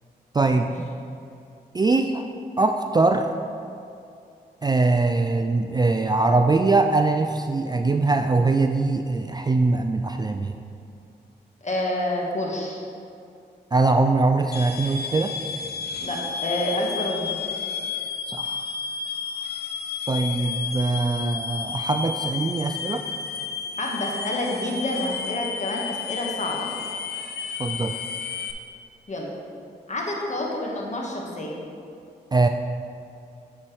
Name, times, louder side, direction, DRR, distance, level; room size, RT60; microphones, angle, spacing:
voice 1, 0.3-0.7 1.7-2.2 2.6-3.3 4.6-10.5 13.7-15.3 18.3-18.6 20.1-23.0 27.6-28.0 32.3-32.5, right 3 dB, 20° right, 6 dB, 0.3 m, -22 dB
voice 2, 11.6-12.8 16.0-17.3 23.8-26.6 29.1-29.3 29.9-31.6, left 1 dB, 40° left, -1 dB, 1.4 m, -28 dB
sound 1, 14.5-28.5, left 6 dB, 60° left, 0.6 m, -32 dB
9.5 x 4.4 x 3.2 m, 2.5 s
supercardioid pair, 45°, 19 cm